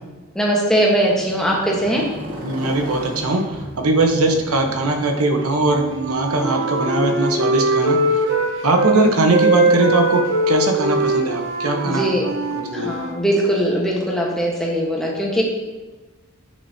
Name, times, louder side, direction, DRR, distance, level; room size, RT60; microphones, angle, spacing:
voice 1, 0.3-2.1 11.8-12.2 12.7-15.4, right 1 dB, ahead, -3 dB, 1.2 m, -20 dB
Motorcycle, 0.9-9.0, equal, 40° right, 1.2 m, -37 dB
voice 2, 2.4-8.1 8.6-12.3 12.6-12.9, right 2 dB, 90° right, 4 dB, 1.0 m, -20 dB
Wind instrument woodwind instrument, 5.6-9.0 9.3-13.2, right 2 dB, 60° right, 1.0 m, -21 dB
8.4 x 6.6 x 2.8 m, 1.2 s
head